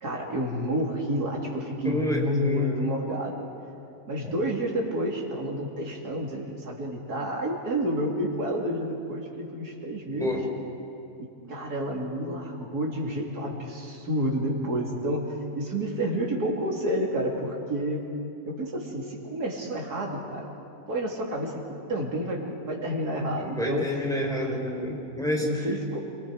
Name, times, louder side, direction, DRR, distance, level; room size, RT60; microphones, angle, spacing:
voice 1, 0.0-3.4 4.1-10.4 11.5-18.1 18.4-20.5 20.9-21.6 21.9-23.9 25.4-26.2, equal, 80° right, -1 dB, 3.3 m, -29 dB
voice 2, 1.8-2.9 4.2-4.4 10.2-10.4 23.4-25.5, equal, ahead, -1 dB, 3.9 m, -29 dB
28.0 x 24.0 x 4.9 m, 2.7 s
omnidirectional pair, 1.6 m